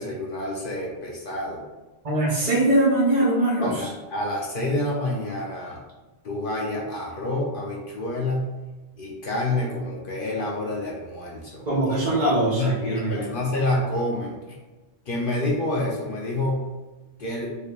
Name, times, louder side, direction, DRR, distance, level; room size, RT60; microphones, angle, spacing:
voice 1, 0.0-1.6 3.6-5.8 6.2-8.5 9.0-12.0 12.4-14.4 15.1-16.7 17.2-17.5, left 1 dB, 55° left, -2 dB, 0.9 m, -28 dB
voice 2, 2.0-3.9 11.6-13.3, right 1 dB, 35° right, -6 dB, 1.0 m, -22 dB
4.1 x 3.3 x 2.4 m, 1.2 s
omnidirectional pair, 1.2 m